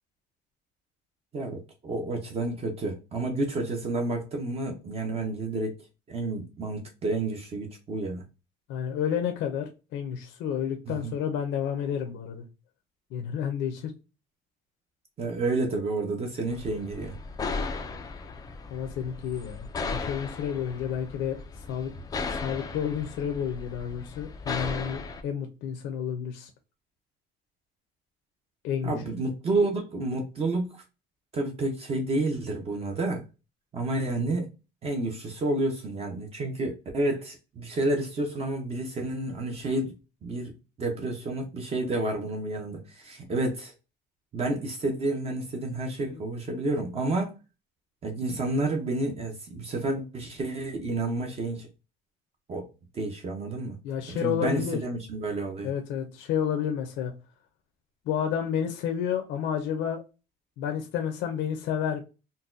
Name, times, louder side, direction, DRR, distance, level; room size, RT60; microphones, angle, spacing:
voice 1, 1.3-5.8 6.1-8.2 10.9-11.1 15.2-17.2 28.8-30.8 31.3-33.2 33.7-34.5 34.8-40.0 40.2-43.7 44.3-47.3 48.0-51.7 52.5-52.7 52.9-53.8 54.1-55.7, right 2 dB, 30° right, 0.6 m, -30 dB
voice 2, 8.7-12.4 13.1-13.9 18.7-21.4 21.7-21.9 22.3-26.5 28.6-29.0 53.8-54.8 55.6-57.1 58.1-60.0 60.6-62.0, left 8 dB, 65° left, 0.6 m, -30 dB
sound 1, 16.5-25.2, left 4 dB, 20° left, 0.3 m, -36 dB
3.9 x 2.2 x 2.5 m
cardioid pair, 150°, 20 cm